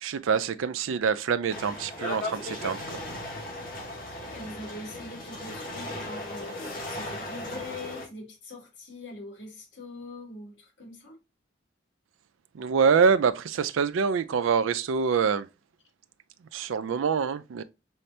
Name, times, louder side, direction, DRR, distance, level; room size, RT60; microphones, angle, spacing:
voice 1, 0.0-3.0 12.5-15.5 16.5-17.6, right 6 dB, 85° right, 0.4 m, -25 dB
sound 1, 1.5-8.1, left 1 dB, 45° left, 1.8 m, -37 dB
voice 2, 4.3-11.2, left 2 dB, 70° left, 2.3 m, -43 dB
5.6 x 3.2 x 2.7 m
head